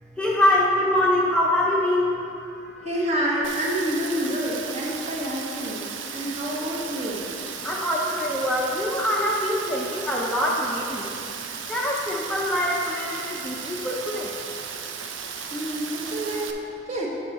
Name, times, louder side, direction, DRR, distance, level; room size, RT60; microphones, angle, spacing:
voice 1, 0.1-2.9 7.6-11.2 11.7-14.4, left 1 dB, 5° left, -4 dB, 0.5 m, -24 dB
voice 2, 2.8-7.2 15.5-16.5 16.9-17.1, right 1 dB, 35° right, -4 dB, 1.3 m, -28 dB
Rain, 3.4-16.5, right 6 dB, 90° right, 0.5 m, -35 dB
8.6 x 5.3 x 4.1 m, 2.7 s
head